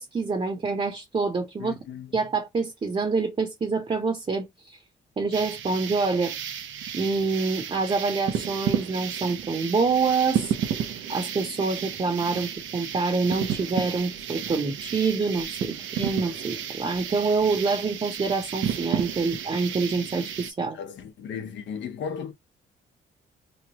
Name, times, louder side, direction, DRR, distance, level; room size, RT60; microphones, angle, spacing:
voice 1, 0.0-1.7 2.1-4.8 5.2-6.4 6.9-10.5 11.1-20.8, right 4 dB, 30° right, 0.9 m, -26 dB
voice 2, 1.6-2.1 20.7-22.3, left 7 dB, 65° left, 0.8 m, -35 dB
sound 1, 5.3-20.5, right 9 dB, 75° right, 0.7 m, -32 dB
3.1 x 2.2 x 2.9 m
cardioid pair, 90°, 20 cm